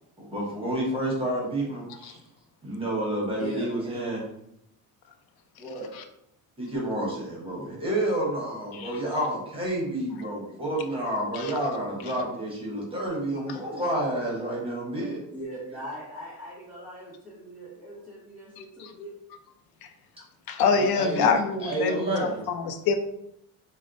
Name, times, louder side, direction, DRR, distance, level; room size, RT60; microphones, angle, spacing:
voice 1, 0.3-2.2 2.6-4.2 6.6-15.2 20.8-21.3 21.6-22.4, right 1 dB, 15° right, -5 dB, 0.9 m, -29 dB
voice 2, 3.0-3.7 5.6-5.9 15.3-19.1, equal, ahead, -10 dB, 1.3 m, -40 dB
voice 3, 20.5-23.0, left 5 dB, 80° left, 8 dB, 0.5 m, -25 dB
4.1 x 2.1 x 2.5 m, 0.79 s
cardioid pair, 155°, 36 cm